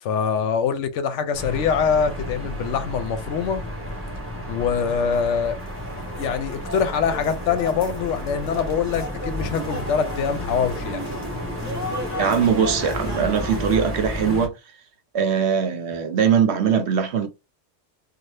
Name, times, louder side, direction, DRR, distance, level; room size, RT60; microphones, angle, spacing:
voice 1, 0.0-3.6 4.5-5.6 6.2-11.0, left 6 dB, 75° left, 0.9 m, -24 dB
sound 1, 1.3-14.5, equal, 15° right, 0.8 m, -32 dB
sound 2, 5.1-13.8, left 1 dB, 15° left, 0.7 m, -35 dB
voice 2, 12.2-14.6 15.1-17.3, right 7 dB, 70° right, 0.9 m, -21 dB
2.7 x 2.3 x 3.2 m
omnidirectional pair, 1.2 m